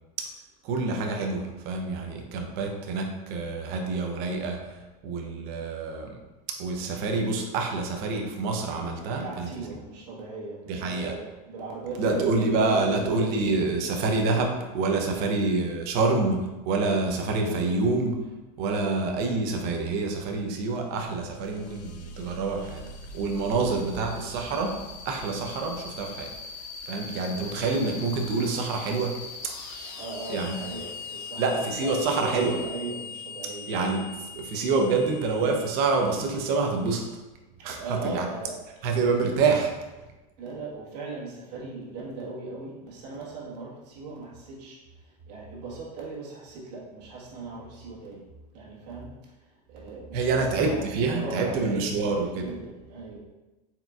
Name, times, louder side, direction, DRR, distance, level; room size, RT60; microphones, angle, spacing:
voice 1, 0.6-4.8 5.0-6.2 6.5-9.5 10.7-11.1 12.0-18.2 18.6-22.8 23.1-24.8 25.0-26.3 26.9-29.2 29.4-29.5 30.3-30.6 31.4-32.6 33.7-37.1 37.6-38.3 38.8-39.7 50.1-52.5, right 3 dB, 50° right, 2 dB, 0.7 m, -27 dB
voice 2, 9.2-13.7 15.1-15.4 23.5-24.0 29.9-33.7 37.6-38.6 40.4-44.8 45.3-48.2 48.5-49.1 49.7-53.2, right 3 dB, 75° right, -4 dB, 1.4 m, -38 dB
sound 1, 20.7-37.0, left 4 dB, 40° left, 0.5 m, -41 dB
4.4 x 3.7 x 2.3 m, 1.1 s
supercardioid pair, 135°, 21 cm